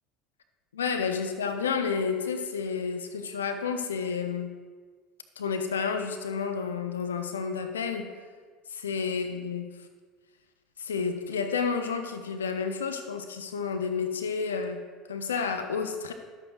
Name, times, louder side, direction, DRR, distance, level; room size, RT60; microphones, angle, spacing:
voice 1, 0.7-4.5 5.4-8.1 8.7-9.7 10.8-16.1, left 5 dB, 80° left, 7 dB, 0.5 m, -30 dB
11.5 x 8.0 x 2.3 m, 1.5 s
hypercardioid pair, 70°, 0 cm